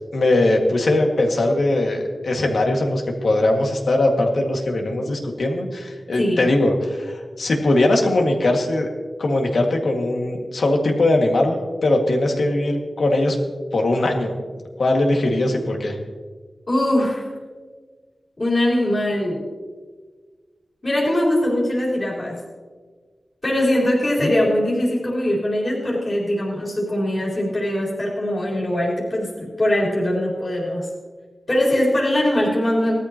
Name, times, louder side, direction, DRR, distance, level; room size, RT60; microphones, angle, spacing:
voice 1, 0.1-8.9 9.2-13.4 13.7-14.3 14.8-16.0 24.2-24.3, left 2 dB, 85° left, 1 dB, 2.0 m, -20 dB
voice 2, 6.2-6.5 16.7-17.2 18.4-19.4 20.8-22.4 23.4-30.9 31.5-33.0, left 1 dB, 40° left, -5 dB, 4.1 m, -21 dB
19.0 x 13.5 x 2.9 m, 1.5 s
wide cardioid pair, 85°, 0 cm